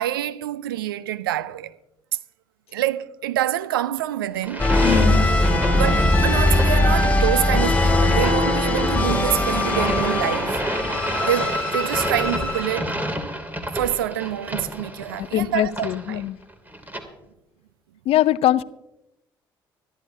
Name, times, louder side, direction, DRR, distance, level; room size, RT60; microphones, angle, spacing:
voice 1, 0.0-1.8 2.7-4.7 5.8-10.6 11.2-12.9 13.7-16.2, right 12 dB, 80° right, 0.5 m, -26 dB
sound 1, 4.4-17.0, right 1 dB, 15° right, 2.7 m, -31 dB
sound 2, 4.6-13.0, left 2 dB, 15° left, 2.8 m, -20 dB
voice 2, 4.8-5.3 15.1-16.4 18.1-18.6, left 13 dB, 60° left, 0.6 m, -22 dB
24.5 x 11.5 x 2.7 m
figure-of-eight pair, 50°, 11 cm